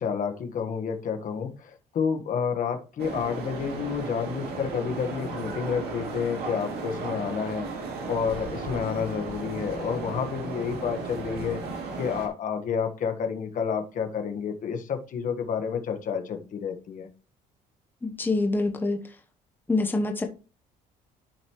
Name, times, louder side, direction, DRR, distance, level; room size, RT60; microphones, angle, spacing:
voice 1, 0.0-7.7 8.1-17.1, left 6 dB, 50° left, 1.4 m, -30 dB
sound 1, 3.0-12.3, right 4 dB, 70° right, 2.6 m, -35 dB
voice 2, 18.0-19.0 19.7-20.2, left 2 dB, 10° left, 1.0 m, -25 dB
11.5 x 5.2 x 3.1 m
cardioid pair, 110°, 17 cm